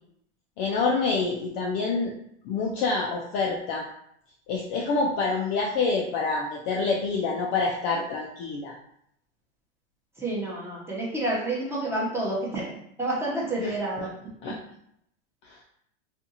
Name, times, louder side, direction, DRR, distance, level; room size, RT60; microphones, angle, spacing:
voice 1, 0.6-2.1 2.4-3.8 4.5-8.7 14.4-14.6 15.4-15.6, left 4 dB, 35° left, -2 dB, 0.4 m, -27 dB
voice 2, 10.2-14.1, right 1 dB, 5° right, -6 dB, 0.8 m, -29 dB
2.5 x 2.4 x 2.7 m, 0.72 s
hypercardioid pair, 125°, 36 cm